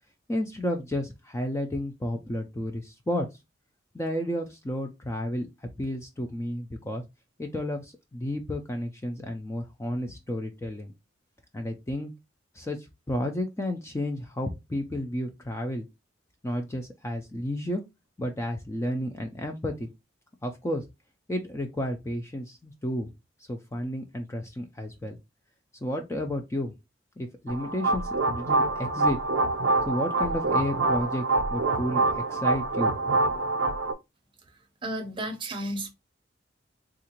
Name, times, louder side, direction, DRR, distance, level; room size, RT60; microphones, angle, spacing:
voice 1, 0.3-3.3 3.9-7.0 7.4-10.9 11.5-12.1 12.5-15.9 16.4-17.8 18.2-19.9 20.4-20.8 21.3-23.1 23.5-25.2 25.8-26.7 27.2-29.2 29.9-33.2, left 1 dB, 15° left, 0.3 m, -32 dB
sound 1, 27.5-33.9, right 2 dB, 70° right, 0.5 m, -26 dB
voice 2, 34.8-35.9, right 1 dB, 25° right, 0.6 m, -32 dB
3.6 x 2.4 x 2.9 m
head